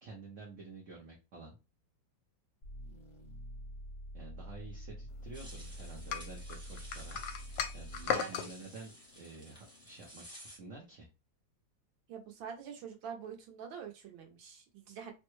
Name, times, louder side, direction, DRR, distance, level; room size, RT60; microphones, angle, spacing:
voice 1, 0.0-1.6 4.1-7.2 7.7-11.1, right 3 dB, 55° right, -2 dB, 0.9 m, -50 dB
sound 1, 2.6-8.2, equal, 50° left, 0.8 m, -47 dB
sound 2, 5.3-10.6, equal, 5° right, 0.7 m, -54 dB
sound 3, 6.1-8.5, left 7 dB, 75° left, 1.2 m, -36 dB
voice 2, 12.1-15.1, right 7 dB, 85° right, 3 dB, 1.6 m, -45 dB
3.5 x 2.2 x 3.0 m, 0.28 s
omnidirectional pair, 2.1 m